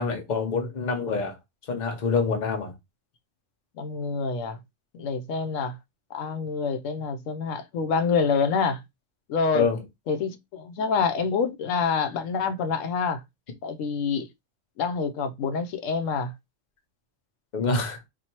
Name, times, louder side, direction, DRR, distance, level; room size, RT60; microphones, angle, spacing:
voice 1, 0.0-1.4 1.7-2.7 9.5-9.8 17.5-18.0, left 4 dB, 40° left, 0.8 m, -26 dB
voice 2, 3.8-4.6 4.9-5.8 6.1-8.8 9.3-9.7 10.1-13.2 13.6-14.3 14.8-16.3, left 5 dB, 90° left, 1.0 m, -27 dB
2.8 x 2.6 x 4.3 m
omnidirectional pair, 1.3 m